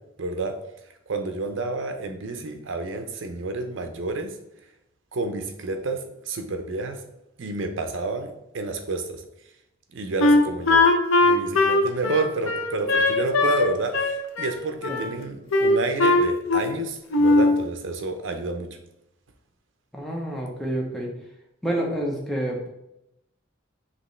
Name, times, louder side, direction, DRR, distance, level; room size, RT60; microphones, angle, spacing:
voice 1, 0.2-0.5 1.1-4.3 5.1-7.0 7.4-9.2 9.9-10.8 11.2-18.8, right 3 dB, 70° right, 7 dB, 0.6 m, -29 dB
Wind instrument woodwind instrument, 10.2-13.7 13.9-15.1 15.5-16.8 17.1-17.6, left 2 dB, 80° left, 0.6 m, -20 dB
voice 2, 19.9-21.1 21.6-22.7, right 1 dB, ahead, -2 dB, 0.7 m, -28 dB
5.2 x 3.0 x 3.2 m, 0.84 s
head